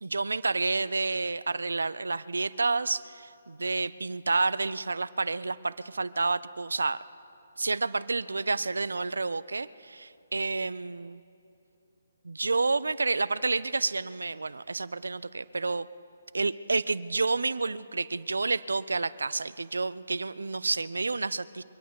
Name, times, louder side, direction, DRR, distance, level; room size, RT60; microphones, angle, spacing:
voice 1, 0.0-7.0 7.6-11.2 12.2-15.9 16.3-21.6, right 3 dB, 85° right, 17 dB, 0.5 m, -29 dB
24.0 x 9.3 x 6.0 m, 2.7 s
hypercardioid pair, 145°, 0 cm